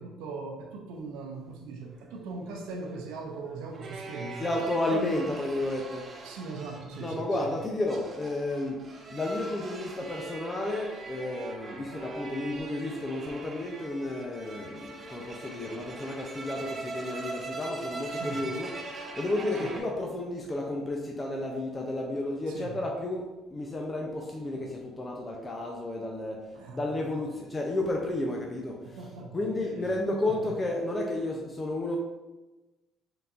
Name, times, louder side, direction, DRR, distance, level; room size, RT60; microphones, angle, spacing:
voice 1, 0.0-4.6 4.9-5.1 6.2-7.5 18.1-18.5 19.6-19.7 22.5-22.8 26.5-27.4 28.8-29.7 30.2-30.5, right 3 dB, 85° right, 2 dB, 0.6 m, -40 dB
sound 1, 2.0-19.8, right 3 dB, 40° right, 0.8 m, -42 dB
voice 2, 4.4-6.1 7.0-8.8 9.1-32.0, left 2 dB, 25° left, 0 dB, 0.7 m, -32 dB
5.3 x 3.8 x 2.6 m, 1.1 s
supercardioid pair, 80°, 0 cm